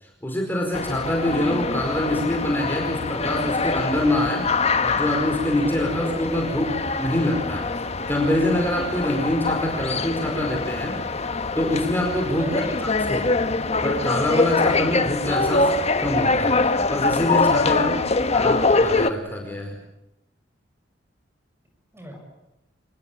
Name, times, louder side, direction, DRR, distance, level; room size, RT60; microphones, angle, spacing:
voice 1, 0.2-4.5 4.8-6.7 7.0-7.6 8.1-11.0 11.5-12.6 13.1-13.3 13.8-15.7 16.0-16.6 16.9-17.9 18.3-19.8, left 1 dB, 10° left, 1 dB, 4.9 m, -25 dB
sound 1, 0.7-19.1, left 3 dB, 35° left, 1.4 m, -24 dB
voice 2, 12.4-13.2 17.5-18.4 21.9-22.2, right 1 dB, 15° right, 4 dB, 6.9 m, -38 dB
27.0 x 21.0 x 8.6 m, 0.91 s
head